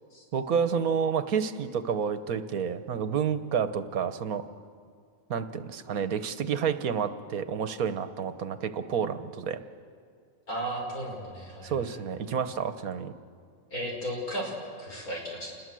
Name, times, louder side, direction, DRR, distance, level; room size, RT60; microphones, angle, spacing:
voice 1, 0.3-4.4 5.3-9.6 11.6-13.1, right 7 dB, 85° right, 11 dB, 1.5 m, -29 dB
voice 2, 10.5-12.0 13.7-14.5 14.8-15.5, right 1 dB, 85° left, -1 dB, 6.0 m, -35 dB
28.0 x 21.0 x 7.7 m, 2.2 s
omnidirectional pair, 1.5 m